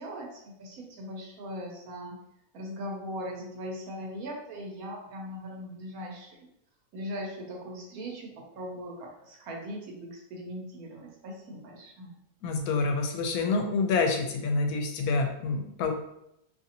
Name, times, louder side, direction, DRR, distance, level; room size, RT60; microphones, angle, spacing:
voice 1, 0.0-2.2 2.5-6.5 6.9-12.1, equal, 80° right, 0 dB, 1.2 m, -39 dB
voice 2, 12.4-15.9, left 4 dB, 90° left, 4 dB, 1.1 m, -27 dB
2.8 x 2.6 x 2.7 m, 0.80 s
omnidirectional pair, 1.5 m